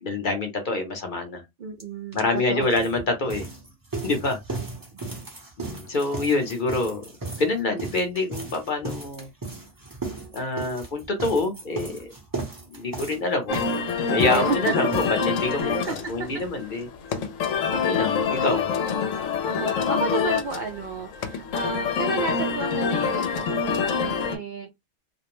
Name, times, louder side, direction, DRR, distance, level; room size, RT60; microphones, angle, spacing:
voice 1, 0.0-1.4 2.1-3.5 4.0-4.4 5.6-7.0 7.4-9.3 10.3-12.1 12.7-13.7 14.1-16.9 17.7-18.7, left 3 dB, 45° left, 0.8 m, -26 dB
voice 2, 1.6-2.9 4.9-5.3 13.5-13.6 14.0-14.9 15.6-16.4 19.4-24.7, right 4 dB, 70° right, 0.4 m, -32 dB
sound 1, 1.8-1.9 2.1-16.5 16.8-16.9 17.1-17.2 17.5-17.6, right 3 dB, 20° right, 0.6 m, -36 dB
sound 2, 13.5-24.4, left 6 dB, 75° left, 1.0 m, -26 dB
2.5 x 2.0 x 2.9 m
omnidirectional pair, 1.3 m